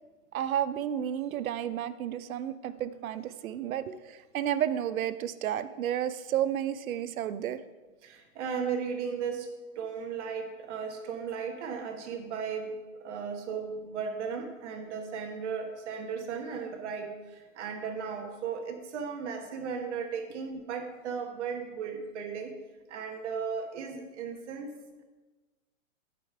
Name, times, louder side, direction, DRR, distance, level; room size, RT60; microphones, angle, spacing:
voice 1, 0.3-7.6, right 10 dB, 80° right, 14 dB, 0.7 m, -32 dB
voice 2, 8.0-9.5 9.7-22.5 22.9-25.0, right 6 dB, 55° right, 5 dB, 1.3 m, -36 dB
12.0 x 5.3 x 4.6 m, 1.2 s
hypercardioid pair, 155°, 41 cm